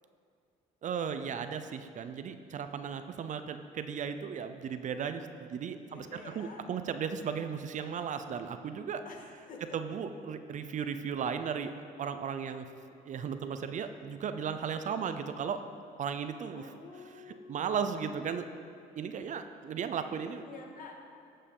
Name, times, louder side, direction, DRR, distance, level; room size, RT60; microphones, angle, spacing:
voice 1, 0.8-9.0 9.7-11.7 12.0-12.6 13.1-15.6 16.0-16.7 17.1-18.5 19.0-20.4, right 7 dB, 45° right, 9 dB, 0.6 m, -36 dB
voice 2, 5.9-6.7 9.1-9.8 16.5-17.7 20.3-21.1, left 4 dB, 55° left, 1 dB, 1.8 m, -49 dB
15.0 x 5.6 x 5.4 m, 2.5 s
cardioid pair, 110°, 17 cm